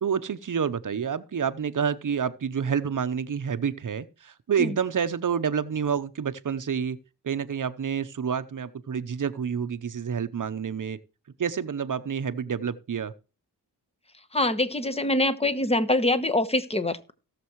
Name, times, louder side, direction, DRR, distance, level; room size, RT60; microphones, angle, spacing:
voice 1, 0.0-7.0 7.2-11.0 11.4-13.1, right 7 dB, 50° right, 0.9 m, -28 dB
voice 2, 14.3-17.1, left 1 dB, 15° left, 1.1 m, -24 dB
18.0 x 6.8 x 3.1 m
cardioid pair, 80°, 40 cm